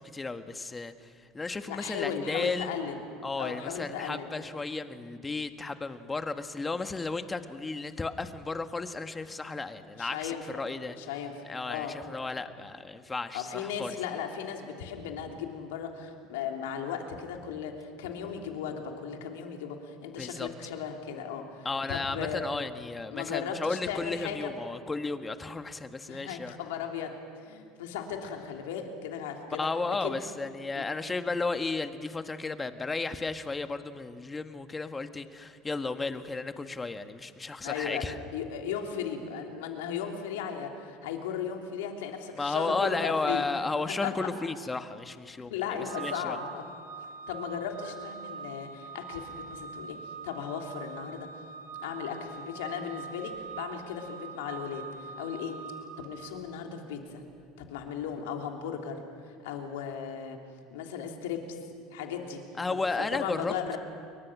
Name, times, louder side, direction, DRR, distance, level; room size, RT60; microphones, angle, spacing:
voice 1, 0.0-2.7 3.2-11.0 11.5-14.0 20.2-20.5 21.7-26.5 29.5-38.2 42.4-46.4 62.6-63.5, left 3 dB, 20° left, 8 dB, 1.7 m, -34 dB
voice 2, 1.7-3.0 3.4-4.3 10.0-10.4 10.9-11.3 11.7-12.0 13.3-22.4 23.1-24.5 26.1-29.7 30.0-30.1 30.7-30.8 37.6-38.0 38.3-43.4 44.0-44.1 45.5-46.6 47.3-50.0 50.2-51.3 51.8-55.5 56.0-57.2 57.6-59.0 59.2-60.4 60.7-61.6 61.9-62.4 62.7-63.8, left 7 dB, 80° left, 2 dB, 3.1 m, -36 dB
Organ, 45.9-56.6, right 5 dB, 80° right, 1.3 m, -43 dB
29.5 x 22.5 x 6.2 m, 2.2 s
hypercardioid pair, 75°, 0 cm